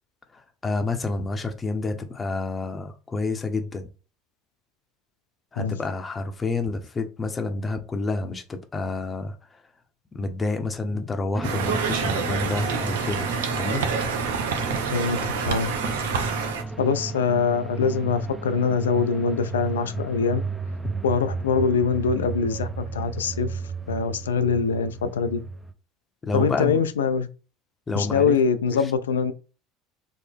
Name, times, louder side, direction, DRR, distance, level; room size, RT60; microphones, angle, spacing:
voice 1, 0.3-3.9 5.5-9.6 10.1-13.8 26.2-26.8 27.9-28.3, left 3 dB, 25° left, 0.6 m, -29 dB
sound 1, 11.3-25.7, right 3 dB, 15° right, 0.5 m, -33 dB
Conversation, 11.4-16.6, right 6 dB, 80° right, 0.5 m, -27 dB
voice 2, 14.9-15.7 16.8-20.4 21.0-23.6 23.9-25.4 26.3-27.3 28.0-29.3, left 5 dB, 85° left, 0.3 m, -23 dB
3.5 x 2.0 x 3.5 m
hypercardioid pair, 75°, 0 cm